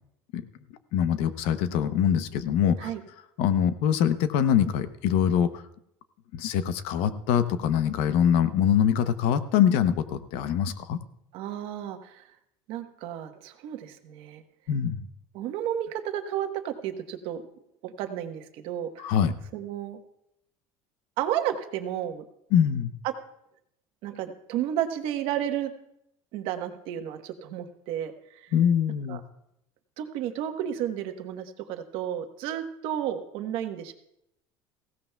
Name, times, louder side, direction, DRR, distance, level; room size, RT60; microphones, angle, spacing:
voice 1, 0.9-2.9 3.4-5.6 6.3-11.0 14.7-15.0 19.0-19.4 22.5-22.9 28.5-29.2, left 9 dB, 70° left, 12 dB, 0.8 m, -24 dB
voice 2, 11.3-12.2 12.7-14.4 15.3-17.4 17.8-19.2 19.5-20.0 21.2-22.2 23.0-23.1 24.0-25.7 26.3-28.5 29.1-29.2 30.0-33.9, right 10 dB, 65° right, 6 dB, 1.1 m, -32 dB
18.5 x 16.0 x 2.3 m, 0.79 s
cardioid pair, 140°, 10 cm